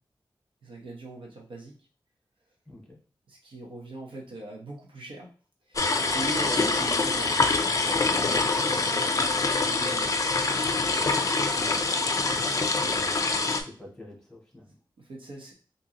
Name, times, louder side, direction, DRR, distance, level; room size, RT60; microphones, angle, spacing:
voice 1, 0.6-1.7 3.3-5.3 5.6-10.2 12.4-13.1 14.7-15.5, right 2 dB, 85° right, -1 dB, 1.0 m, -41 dB
voice 2, 2.7-3.0 11.5-11.9 12.5-13.2 13.6-14.8, left 1 dB, 5° left, -3 dB, 1.7 m, -47 dB
sound 1, 5.8-13.6, left 3 dB, 40° left, 0.4 m, -25 dB
3.7 x 2.8 x 2.9 m, 0.39 s
wide cardioid pair, 95°, 9 cm